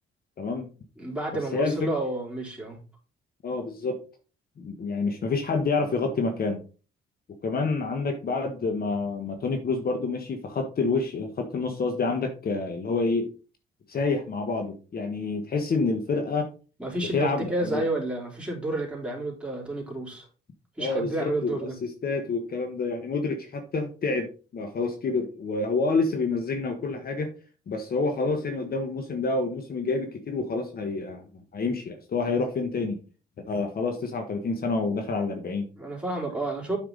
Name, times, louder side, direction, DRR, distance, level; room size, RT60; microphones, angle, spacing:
voice 1, 0.4-0.7 1.5-1.9 3.4-4.0 4.6-6.6 7.4-13.3 13.9-16.5 17.1-17.8 20.8-27.3 27.7-31.2 31.5-33.0 33.5-35.6, left 3 dB, 50° left, 1.4 m, -28 dB
voice 2, 1.0-2.8 16.8-20.3 20.8-21.7 35.7-36.8, right 2 dB, 5° right, 3.8 m, -30 dB
8.3 x 5.8 x 4.0 m
cardioid pair, 90°, 20 cm